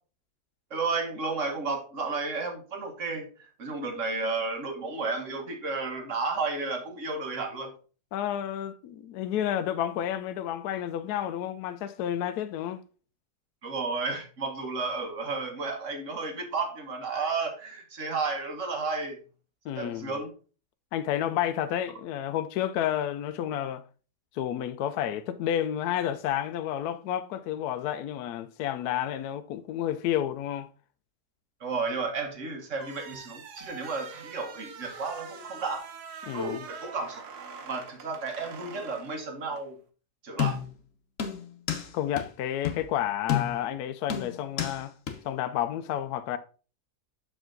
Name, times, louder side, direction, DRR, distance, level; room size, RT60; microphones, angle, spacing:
voice 1, 0.7-7.7 13.6-19.2 19.7-20.3 31.6-35.9 36.3-37.2 37.7-39.8 40.2-40.6, right 4 dB, 50° right, 1.5 m, -32 dB
voice 2, 8.1-12.8 19.6-20.1 20.9-23.8 24.3-30.7 36.2-36.6 41.9-44.9 45.2-46.4, left 11 dB, 75° left, 1.1 m, -30 dB
sound 1, 32.7-39.7, right 6 dB, 70° right, 1.4 m, -45 dB
sound 2, 40.4-40.8 41.2-41.9 42.2-42.3 42.6-42.9 43.3-43.7 44.1-44.8 45.1-45.2, left 9 dB, 55° left, 1.2 m, -30 dB
6.8 x 5.0 x 3.7 m
omnidirectional pair, 1.7 m